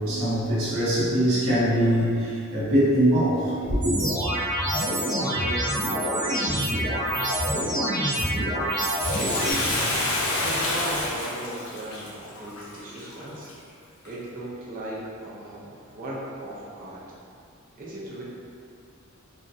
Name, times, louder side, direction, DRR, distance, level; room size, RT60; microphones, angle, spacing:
voice 1, 0.0-3.9, equal, 80° right, -9 dB, 0.9 m, -22 dB
sound 1, 3.8-9.5, equal, 25° right, 0.9 m, -26 dB
voice 2, 5.2-7.7 8.1-9.7 10.4-13.5 14.0-17.0 17.8-18.2, right 1 dB, 40° right, -6 dB, 0.6 m, -38 dB
Bathtub (filling or washing), 9.0-13.5 14.1-14.2, left 2 dB, 90° left, 0.6 m, -28 dB
3.6 x 2.1 x 2.6 m, 2.4 s
head